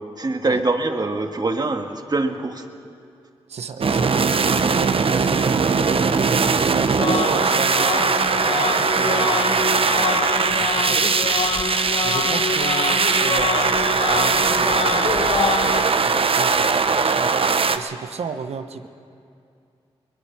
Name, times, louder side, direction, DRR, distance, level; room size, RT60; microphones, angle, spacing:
voice 1, 0.2-2.7, right 2 dB, 40° right, 5 dB, 1.8 m, -24 dB
voice 2, 3.5-5.7 6.7-11.3 12.0-15.2 16.0-18.9, right 6 dB, 85° right, 9 dB, 1.1 m, -34 dB
sound 1, 3.8-17.8, right 5 dB, 60° right, 0.9 m, -20 dB
sound 2, 7.0-15.8, left 5 dB, 65° left, 1.1 m, -26 dB
22.0 x 21.0 x 5.8 m, 2.5 s
cardioid pair, 60°, 11 cm